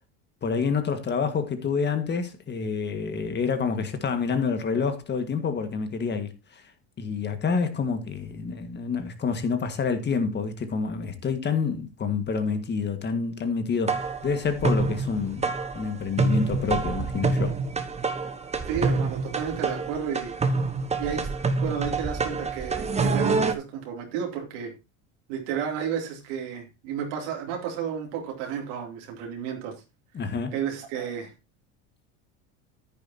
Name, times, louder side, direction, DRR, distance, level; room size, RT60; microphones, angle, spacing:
voice 1, 0.4-6.6 7.0-17.5 30.1-30.5, left 5 dB, 30° left, 1.7 m, -28 dB
sound 1, 13.9-23.5, right 3 dB, 20° right, 1.3 m, -27 dB
voice 2, 18.7-20.3 21.0-21.3 21.6-24.7 25.3-29.8 30.5-31.3, right 7 dB, 75° right, 2.9 m, -32 dB
10.0 x 9.7 x 2.8 m
supercardioid pair, 110°, 36 cm